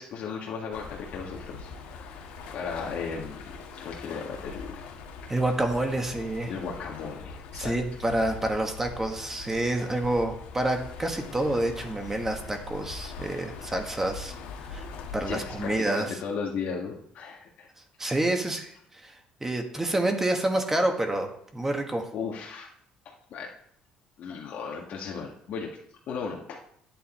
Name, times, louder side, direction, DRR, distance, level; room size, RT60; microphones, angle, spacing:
voice 1, 0.0-3.4 3.7-4.8 6.5-7.7 15.3-17.7 18.0-18.1 22.1-22.7 23.0-23.5 24.2-25.8 26.1-26.6, left 5 dB, 60° left, -2 dB, 1.7 m, -36 dB
sound 1, 0.7-15.8, left 4 dB, 85° left, 1.7 m, -42 dB
voice 2, 5.3-6.5 7.6-14.3 14.7-14.9 15.1-16.1 18.0-18.8 19.0-19.1 19.4-22.1, right 1 dB, 15° right, 4 dB, 1.6 m, -28 dB
10.5 x 9.1 x 4.4 m, 0.68 s
cardioid pair, 105°, 3 cm